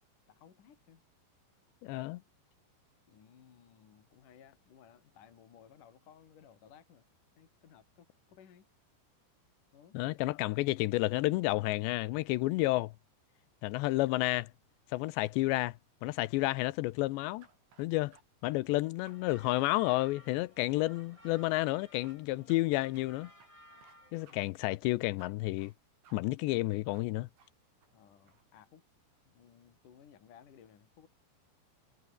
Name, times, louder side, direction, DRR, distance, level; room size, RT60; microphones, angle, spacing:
voice 1, 0.3-1.0 3.1-7.1 7.4-8.7 9.7-10.0 24.3-24.4 27.9-28.8 29.3-31.1, left 8 dB, 50° left, 3.7 m, -59 dB
voice 2, 1.8-2.2 9.9-12.9 13.6-14.5 14.9-15.7 16.0-17.5 17.8-18.2 18.4-23.3 24.1-25.7 26.1-27.3, left 19 dB, 85° left, 2.9 m, -31 dB
sound 1, 17.4-18.2 18.5-19.2 19.4-19.6 19.9-20.0 20.3-21.4 21.6-21.8 22.0-22.2 22.5-22.6 22.9-23.1 23.4-24.0 24.3-24.4 24.7-25.3 25.6-25.8 26.0-26.2 26.5-26.6 26.9-27.1 27.4-27.5 27.8-28.5, right 6 dB, 80° right, 7.6 m, -62 dB
sound 2, 19.1-24.5, left 1 dB, 5° left, 6.9 m, -58 dB
omnidirectional pair, 5.2 m